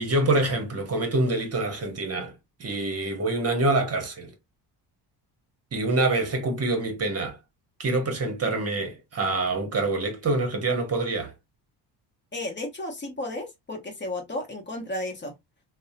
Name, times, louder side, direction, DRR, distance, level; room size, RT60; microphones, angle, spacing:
voice 1, 0.0-2.3 2.6-4.3 5.7-7.4 7.8-11.3, right 2 dB, 35° right, 0.9 m, -26 dB
voice 2, 12.3-15.3, left 1 dB, 25° left, 0.8 m, -33 dB
2.7 x 2.1 x 2.4 m
cardioid pair, 85°, 44 cm